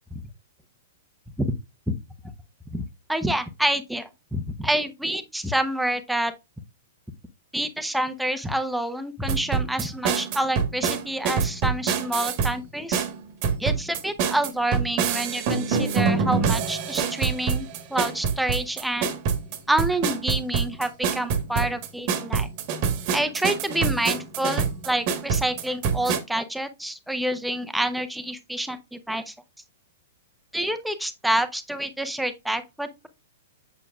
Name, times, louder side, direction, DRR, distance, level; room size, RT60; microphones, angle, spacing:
voice 1, 3.1-6.3 7.5-13.0 13.6-19.1 19.7-22.5 23.1-29.3 30.5-33.1, right 1 dB, ahead, 0.9 m, -27 dB
sound 1, 9.3-12.5 12.9-26.2, right 6 dB, 40° right, 1.4 m, -25 dB
7.8 x 7.4 x 2.4 m
figure-of-eight pair, 105°, 0 cm